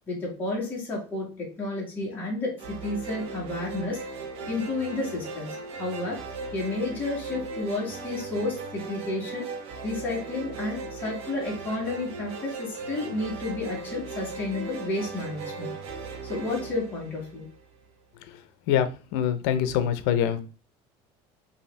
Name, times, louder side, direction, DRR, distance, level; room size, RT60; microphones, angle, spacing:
voice 1, 0.1-4.0 4.5-5.5 5.8-6.2 6.5-9.5 9.8-15.7 16.3-17.5, left 2 dB, 15° left, -5 dB, 1.8 m, -31 dB
sound 1, 2.6-17.8, right 4 dB, 55° right, 0.9 m, -38 dB
voice 2, 18.7-20.4, left 9 dB, 80° left, 11 dB, 0.7 m, -24 dB
5.5 x 2.8 x 3.3 m, 0.35 s
cardioid pair, 170°, 12 cm